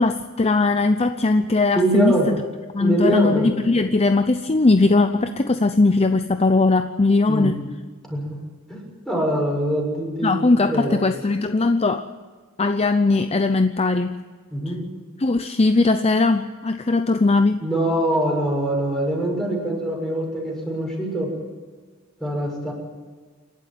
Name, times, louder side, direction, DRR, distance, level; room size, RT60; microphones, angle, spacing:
voice 1, 0.0-2.4 2.7-7.6 10.2-12.0 12.6-14.2 15.2-17.6, left 3 dB, 30° left, 9 dB, 0.6 m, -19 dB
voice 2, 1.7-2.3 2.8-3.5 7.3-7.5 8.1-8.4 8.7-10.3 10.7-11.0 14.5-14.9 17.6-21.3 22.2-22.7, right 1 dB, ahead, -2 dB, 6.8 m, -23 dB
28.0 x 12.0 x 9.1 m, 1.5 s
head